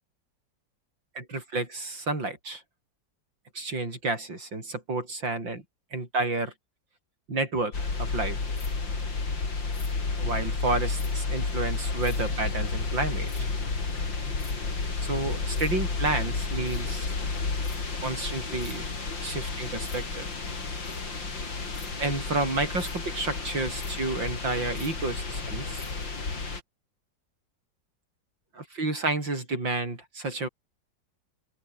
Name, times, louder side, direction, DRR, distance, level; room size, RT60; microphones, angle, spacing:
voice 1, 1.2-2.6 3.6-5.6 5.9-6.5 7.3-8.4 10.1-13.5 15.0-17.1 18.0-18.9 19.2-20.3 22.0-25.8 28.5-30.5, right 2 dB, 80° right, 6.9 m, -30 dB
sound 1, 7.7-26.6, left 4 dB, 80° left, 4.8 m, -31 dB
omnidirectional pair, 2.0 m